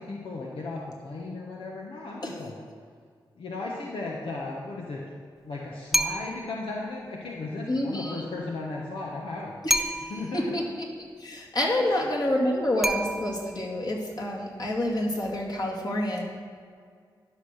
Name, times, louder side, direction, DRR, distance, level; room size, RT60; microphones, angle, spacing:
voice 1, 0.0-2.6 3.4-5.0 5.4-9.5 10.1-10.7, left 3 dB, 90° left, -2 dB, 1.1 m, -35 dB
sound 1, 5.9-6.6 9.7-10.4 12.8-13.6, right 1 dB, 5° right, 0.6 m, -28 dB
voice 2, 7.7-8.2 9.6-10.6 11.2-16.2, left 1 dB, 50° left, -3 dB, 2.5 m, -28 dB
11.5 x 6.0 x 6.4 m, 2.1 s
cardioid pair, 55°, 9 cm